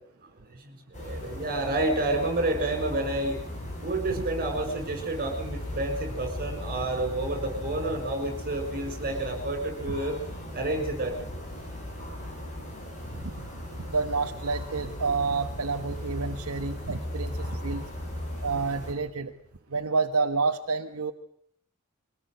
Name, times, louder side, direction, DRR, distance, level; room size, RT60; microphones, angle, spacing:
voice 1, 0.2-3.4 3.8-10.1 10.5-11.2, right 2 dB, 40° right, 7 dB, 6.5 m, -30 dB
sound 1, 0.9-18.9, left 1 dB, 35° left, 7.3 m, -37 dB
voice 2, 13.1-13.4 13.8-17.9 18.4-19.3 19.7-21.1, right 4 dB, 80° right, 6 dB, 1.1 m, -29 dB
23.0 x 18.5 x 8.0 m, 0.67 s
head